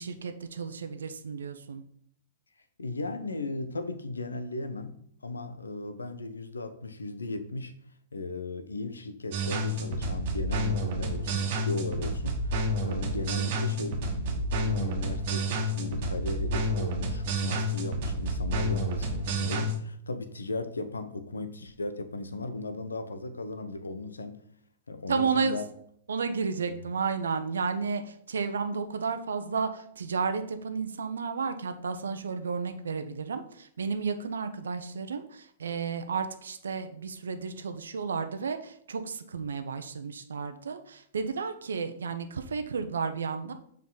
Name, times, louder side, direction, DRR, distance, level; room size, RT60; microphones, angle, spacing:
voice 1, 0.0-1.8 25.1-25.6 26.1-43.5, right 5 dB, 75° right, 0.8 m, -32 dB
voice 2, 2.8-7.8 8.1-24.4 24.9-25.7 26.7-26.8, left 2 dB, 80° left, 0.8 m, -36 dB
sound 1, 9.3-19.8, right 1 dB, 50° right, 1.4 m, -30 dB
7.1 x 4.8 x 4.0 m
figure-of-eight pair, 110°, 0 cm